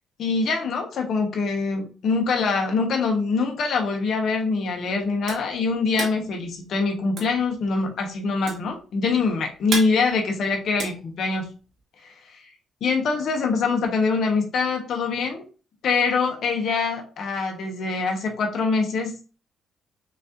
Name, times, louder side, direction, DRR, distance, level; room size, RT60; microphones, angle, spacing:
voice 1, 0.2-11.5 12.0-12.4 12.8-15.4 15.8-19.2, left 4 dB, 65° left, 2 dB, 1.1 m, -24 dB
sound 1, 4.6-11.8, right 4 dB, 70° right, 1.5 m, -34 dB
6.3 x 2.7 x 2.6 m, 0.35 s
cardioid pair, 90°, 0 cm